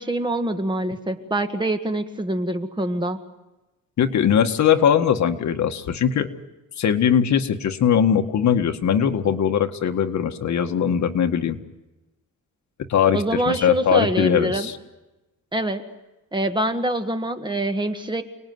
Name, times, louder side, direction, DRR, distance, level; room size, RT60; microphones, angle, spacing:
voice 1, 0.0-3.2 13.1-14.7 15.5-15.8 16.3-18.2, right 1 dB, 15° right, 7 dB, 1.8 m, -25 dB
voice 2, 4.0-6.3 6.8-11.6 12.9-14.8, left 8 dB, 60° left, 6 dB, 1.8 m, -20 dB
30.0 x 20.0 x 9.6 m, 1.1 s
cardioid pair, 145°, 32 cm